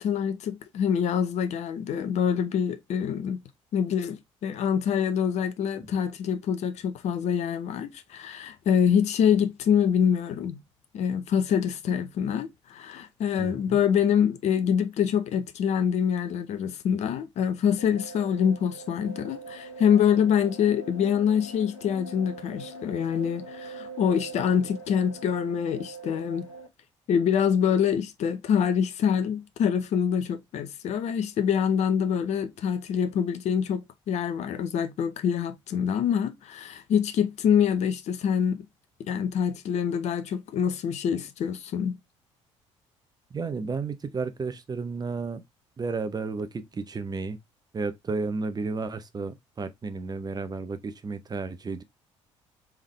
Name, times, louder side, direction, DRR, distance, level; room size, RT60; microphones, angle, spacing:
voice 1, 0.0-3.4 3.7-10.6 10.9-26.5 27.1-38.7 39.0-42.0, left 8 dB, 50° left, 0.7 m, -25 dB
voice 2, 13.4-13.8 43.3-45.4 45.8-47.4 47.7-51.8, right 4 dB, 25° right, 0.7 m, -32 dB
sound 1, 17.8-26.7, right 3 dB, 90° left, 0.7 m, -42 dB
3.6 x 3.5 x 3.2 m
figure-of-eight pair, 50°, 15 cm